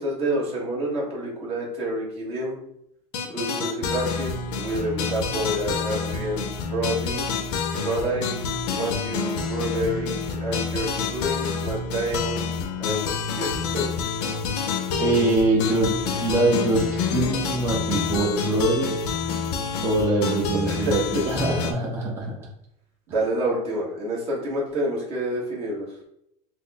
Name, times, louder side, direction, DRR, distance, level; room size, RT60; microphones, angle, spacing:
voice 1, 0.0-2.6 3.2-7.3 7.8-8.5 8.7-12.5 12.8-13.0 13.3-14.3 20.6-21.2 21.5-21.6 23.1-26.0, right 1 dB, 30° right, -5 dB, 1.2 m, -28 dB
sound 1, 3.1-21.7, left 5 dB, 85° left, 0.6 m, -28 dB
voice 2, 15.0-18.9 19.8-22.5, right 2 dB, 10° right, -3 dB, 0.5 m, -23 dB
4.1 x 2.0 x 3.4 m, 0.77 s
supercardioid pair, 165°, 20 cm